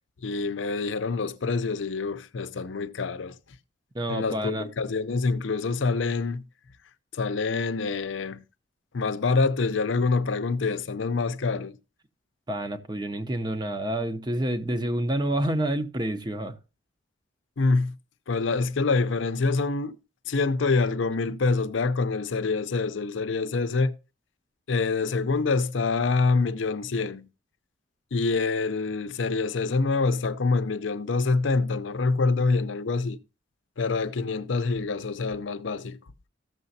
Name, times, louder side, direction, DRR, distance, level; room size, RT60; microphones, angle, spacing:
voice 1, 0.2-3.4 4.1-6.4 7.1-8.4 8.9-11.8 17.6-17.9 18.3-20.0 20.3-23.9 24.7-27.3 28.1-33.2 33.8-36.0, left 4 dB, 75° left, 0.6 m, -26 dB
voice 2, 3.9-4.7 12.5-16.6, right 1 dB, 20° right, 0.7 m, -28 dB
14.0 x 6.7 x 2.7 m
head